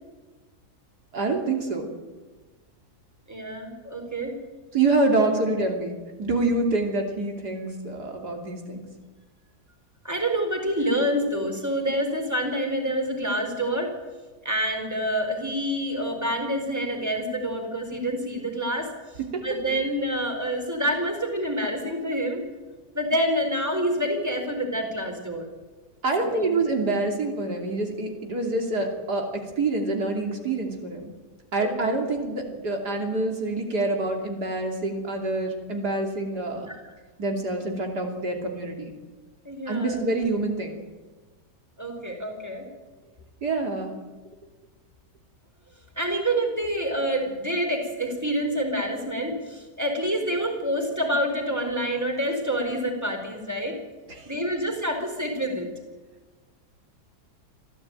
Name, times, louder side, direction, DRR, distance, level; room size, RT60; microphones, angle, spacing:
voice 1, 1.1-1.9 4.7-8.9 19.2-19.5 26.0-31.1 31.5-36.7 37.2-38.9 39.7-40.8 43.4-43.9 54.1-54.3, right 2 dB, 75° right, 2 dB, 3.6 m, -26 dB
voice 2, 3.3-4.3 10.0-13.9 14.4-18.9 19.4-22.4 22.9-25.5 26.2-26.5 31.6-31.7 36.7-36.8 39.4-40.0 41.8-42.7 46.0-53.8 54.3-55.7, equal, 10° right, 3 dB, 4.5 m, -27 dB
26.5 x 14.5 x 9.1 m, 1.3 s
omnidirectional pair, 1.7 m